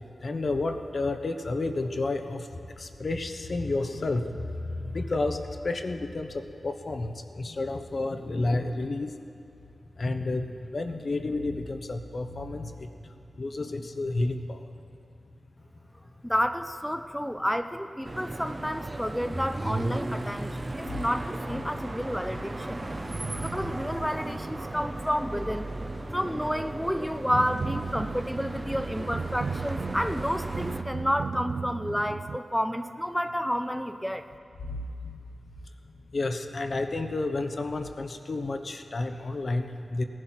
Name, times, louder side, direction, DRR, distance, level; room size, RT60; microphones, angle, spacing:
voice 1, 0.2-2.5 2.8-4.4 4.6-9.1 10.0-12.9 13.4-14.7 20.9-21.0 21.5-21.7 22.8-23.1 34.6-35.1 36.1-40.0, left 2 dB, 60° left, 7 dB, 1.0 m, -31 dB
voice 2, 16.2-22.8 23.4-25.7 26.1-34.3, equal, 5° left, 8 dB, 0.7 m, -30 dB
sound 1, 18.0-30.8, right 2 dB, 35° right, 1.2 m, -35 dB
sound 2, 27.3-32.4, right 5 dB, 80° right, 0.3 m, -35 dB
18.0 x 11.0 x 6.0 m, 2.6 s
cardioid pair, 50°, 0 cm